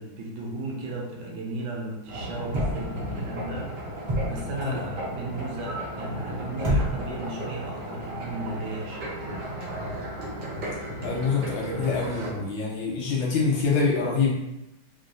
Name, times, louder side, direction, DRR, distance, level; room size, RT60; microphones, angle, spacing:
voice 1, 0.0-3.7 4.2-9.2, right 2 dB, 80° right, -1 dB, 1.4 m, -35 dB
sound 1, 2.1-12.3, right 1 dB, 65° right, 1.2 m, -35 dB
sound 2, 2.5-3.1 4.1-4.5 6.6-7.3 8.1-8.2, equal, 50° right, 0.6 m, -27 dB
voice 2, 11.0-14.3, left 4 dB, 70° left, -4 dB, 1.4 m, -25 dB
3.5 x 2.3 x 2.6 m, 0.91 s
omnidirectional pair, 2.3 m